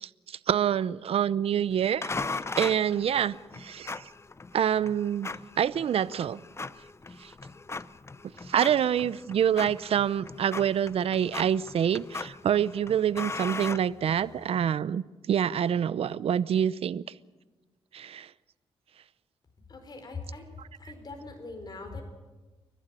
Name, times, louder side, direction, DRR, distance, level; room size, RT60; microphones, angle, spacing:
voice 1, 0.0-2.1 2.6-4.1 4.5-5.3 5.6-6.4 7.2-7.3 8.5-15.0 15.3-17.0 17.9-18.3, right 9 dB, 65° right, 18 dB, 0.7 m, -26 dB
sound 1, 2.0-14.5, left 3 dB, 25° left, 0.6 m, -39 dB
voice 2, 19.7-20.5 20.8-22.0, left 3 dB, 40° left, 4 dB, 4.8 m, -41 dB
29.5 x 12.0 x 9.1 m, 1.2 s
cardioid pair, 70°, 11 cm